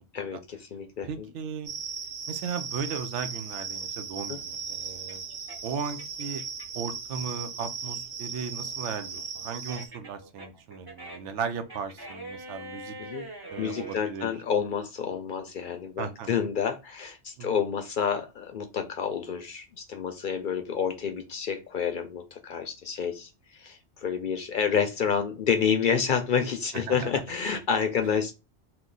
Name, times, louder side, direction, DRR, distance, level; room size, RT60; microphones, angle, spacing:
voice 1, 0.1-1.3 4.3-4.4 13.0-13.3 13.6-28.3, left 7 dB, 60° left, 0.6 m, -29 dB
voice 2, 1.0-1.7 2.3-5.2 5.6-6.4 6.7-12.9 13.5-14.3 16.0-16.4 17.4-17.5 26.9-27.1, right 6 dB, 90° right, 0.9 m, -36 dB
sound 1, 1.7-9.9, right 6 dB, 55° right, 1.0 m, -37 dB
sound 2, 3.5-6.9 7.3-14.0, right 2 dB, 25° right, 0.6 m, -44 dB
3.0 x 2.1 x 3.8 m
omnidirectional pair, 1.2 m